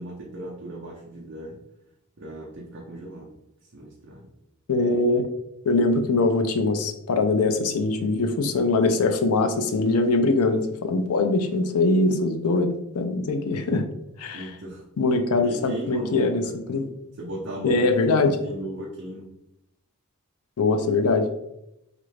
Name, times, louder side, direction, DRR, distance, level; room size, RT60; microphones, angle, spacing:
voice 1, 0.0-1.6 2.2-3.3 3.7-4.3 14.3-14.8 15.3-16.6 17.2-19.3, right 1 dB, 50° right, -4 dB, 0.6 m, -37 dB
voice 2, 4.7-5.3 5.6-12.7 12.9-13.9 14.2-14.5 15.0-16.9 17.6-18.4 20.6-21.3, left 3 dB, 80° left, 7 dB, 0.4 m, -22 dB
3.2 x 2.5 x 3.2 m, 0.84 s
head